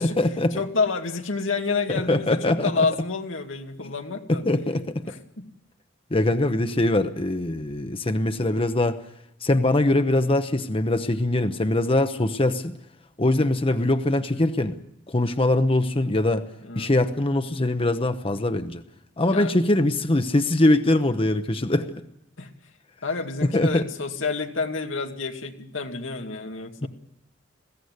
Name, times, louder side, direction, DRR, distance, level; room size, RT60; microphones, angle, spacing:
voice 1, 0.0-0.6 1.9-2.9 3.8-3.9 4.4-5.0 6.1-9.0 9.4-12.7 13.2-14.8 15.1-16.4 16.8-18.8 19.2-21.9 23.5-23.8 26.8-26.9, left 1 dB, 30° left, 8 dB, 0.9 m, -22 dB
voice 2, 0.6-4.4 5.1-5.5 16.6-16.9 19.3-19.6 22.4-22.5 23.0-26.9, left 4 dB, 90° left, 4 dB, 2.3 m, -29 dB
21.5 x 16.5 x 9.5 m, 0.79 s
head